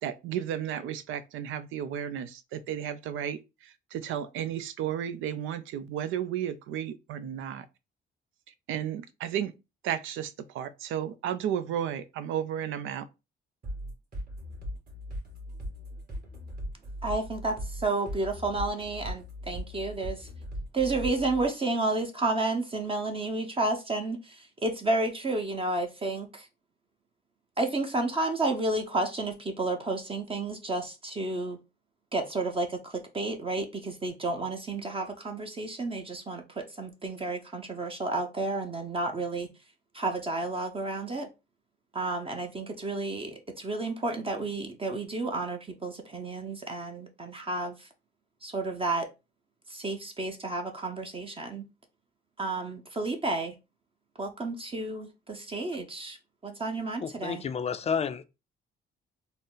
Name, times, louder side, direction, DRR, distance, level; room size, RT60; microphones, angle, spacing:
voice 1, 0.0-7.7 8.7-9.5 9.8-13.1, right 9 dB, 80° right, 0.4 m, -33 dB
sound 1, 13.6-21.5, equal, 45° right, 1.9 m, -38 dB
voice 2, 17.0-20.3 20.7-26.5 27.6-31.6 32.1-39.5 39.9-41.3 41.9-47.9 48.4-49.1 49.7-51.6 52.4-53.5 54.2-56.2 56.4-57.5, right 2 dB, 30° right, 0.7 m, -31 dB
voice 3, 57.0-58.2, left 6 dB, 30° left, 0.4 m, -30 dB
3.9 x 2.0 x 3.8 m
cardioid pair, 90°, 20 cm